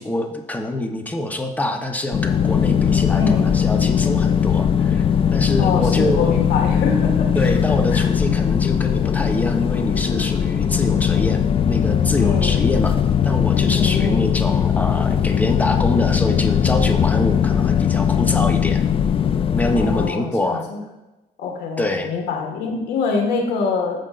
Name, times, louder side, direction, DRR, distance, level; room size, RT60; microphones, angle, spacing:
voice 1, 0.0-5.0 5.3-6.4 7.3-13.0 13.2-18.9 19.5-20.6 21.8-22.1, left 1 dB, 10° left, 4 dB, 0.9 m, -25 dB
sound 1, 2.1-20.1, left 8 dB, 35° left, 0.3 m, -19 dB
voice 2, 3.1-3.4 5.6-7.3 7.7-8.1 12.2-12.6 13.7-14.3 19.7-20.8 21.4-24.0, left 4 dB, 80° left, 2 dB, 1.7 m, -25 dB
14.5 x 5.2 x 2.5 m, 1.0 s
cardioid pair, 110°, 17 cm